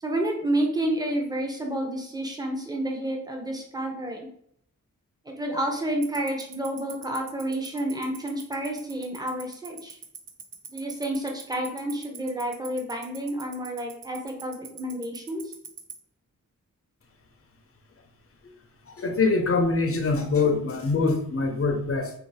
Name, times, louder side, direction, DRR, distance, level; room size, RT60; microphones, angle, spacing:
voice 1, 0.0-4.3 5.3-10.0 10.7-15.5, right 1 dB, 10° right, 1 dB, 0.7 m, -30 dB
Tick-tock, 6.0-15.9, right 8 dB, 65° right, 0.6 m, -39 dB
voice 2, 19.0-22.1, left 3 dB, 40° left, 4 dB, 0.6 m, -24 dB
2.7 x 2.0 x 3.2 m, 0.67 s
cardioid pair, 45°, 35 cm